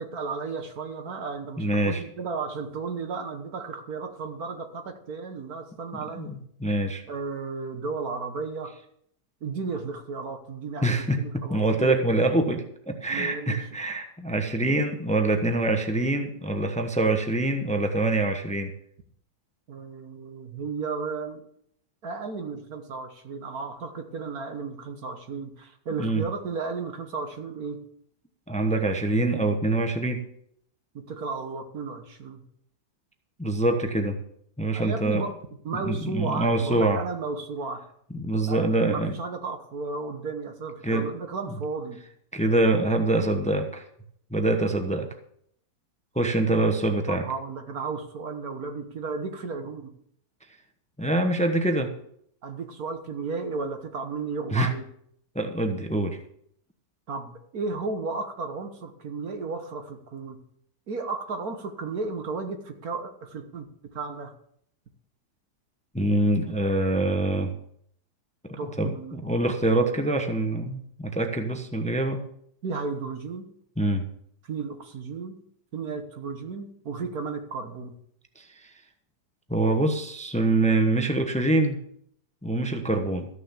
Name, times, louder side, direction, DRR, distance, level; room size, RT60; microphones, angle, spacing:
voice 1, 0.0-6.4 7.1-8.7 9.4-12.0 13.1-13.6 19.7-21.4 22.0-27.8 31.0-32.4 34.7-35.4 35.6-37.8 38.5-42.0 47.1-49.9 52.4-54.8 57.1-60.4 60.9-63.7 63.9-64.3 68.6-69.2 71.5-71.6 72.6-73.5 74.4-75.4 75.7-77.9, right 4 dB, 60° right, 6 dB, 1.7 m, -34 dB
voice 2, 1.6-2.0 6.2-7.0 10.8-18.7 26.0-26.3 28.5-30.3 33.4-34.2 34.6-35.2 35.8-37.0 38.2-39.2 40.8-41.1 42.3-43.8 44.3-45.1 46.1-47.3 51.0-51.9 54.5-54.7 55.3-56.2 65.9-67.5 68.5-72.2 73.8-74.1 78.4-78.5 79.5-81.8 82.4-83.3, right 2 dB, 5° left, 6 dB, 0.7 m, -25 dB
14.0 x 6.6 x 7.3 m, 0.69 s
omnidirectional pair, 1.8 m